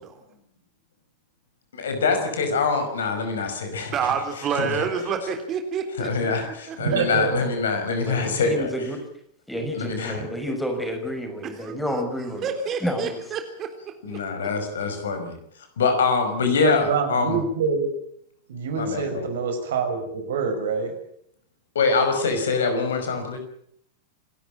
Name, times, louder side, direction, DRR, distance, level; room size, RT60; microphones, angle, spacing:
voice 1, 1.7-3.9 4.5-4.8 6.0-8.7 9.7-10.2 14.0-15.4 15.8-17.4 18.8-19.2 21.8-23.4, left 4 dB, 65° left, 7 dB, 5.4 m, -24 dB
voice 2, 3.9-6.8 11.4-12.0 12.4-13.7 14.1-14.2, right 6 dB, 30° right, 6 dB, 3.7 m, -29 dB
voice 3, 6.8-7.6 8.2-8.4 9.6-9.7 10.2-10.3 16.6-17.9 18.5-20.9, right 5 dB, 60° right, 5 dB, 5.7 m, -26 dB
voice 4, 8.0-9.0 9.5-12.5 12.8-13.2, equal, 5° left, 5 dB, 6.0 m, -30 dB
27.5 x 13.5 x 8.9 m, 0.71 s
figure-of-eight pair, 90°, 0 cm